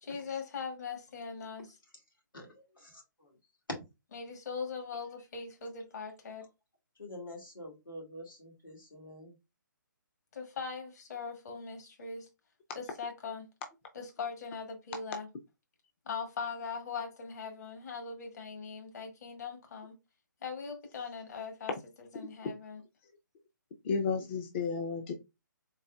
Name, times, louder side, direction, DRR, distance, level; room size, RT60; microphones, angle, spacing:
voice 1, 0.0-1.7 4.1-6.4 10.3-12.3 12.7-13.5 13.9-15.3 16.1-20.0 20.4-21.7 22.1-22.8, left 5 dB, 55° left, 1.4 m, -40 dB
voice 2, 2.3-3.4 3.7-3.8 7.0-9.4, left 1 dB, 85° left, 2.1 m, -46 dB
voice 3, 23.8-25.1, left 5 dB, 35° left, 0.5 m, -32 dB
4.0 x 3.6 x 2.4 m
figure-of-eight pair, 140°, 11 cm